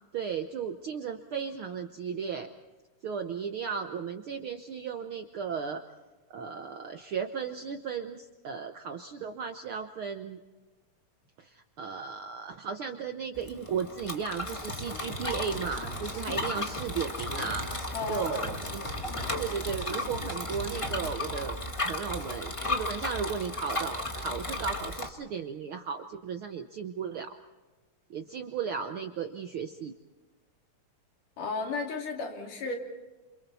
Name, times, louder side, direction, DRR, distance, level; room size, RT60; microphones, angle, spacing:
voice 1, 0.1-2.5 3.0-5.8 6.3-10.4 11.4-17.7 18.1-18.8 19.4-21.6 21.8-27.4 28.1-29.9, right 6 dB, 75° right, 7 dB, 1.2 m, -35 dB
Bicycle, 13.3-25.1, left 2 dB, 25° left, 0.6 m, -35 dB
sound 1, 14.5-21.3, right 1 dB, 40° left, 9.0 m, -42 dB
voice 2, 17.9-18.5 31.4-32.8, left 3 dB, 90° left, 1 dB, 4.4 m, -34 dB
28.5 x 27.5 x 4.2 m, 1.2 s
omnidirectional pair, 3.5 m